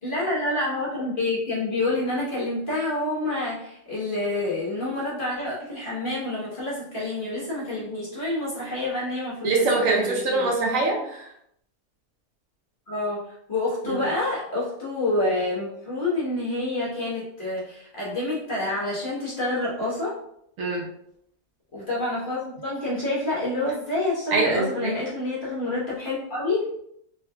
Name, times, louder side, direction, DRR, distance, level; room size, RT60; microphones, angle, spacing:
voice 1, 0.0-10.5 12.9-20.2 21.7-26.7, left 2 dB, 40° left, -7 dB, 1.1 m, -28 dB
voice 2, 9.4-11.3 13.9-14.0 20.6-20.9 24.3-25.0, right 3 dB, 70° right, 0 dB, 1.1 m, -24 dB
3.6 x 3.1 x 2.2 m, 0.72 s
omnidirectional pair, 1.5 m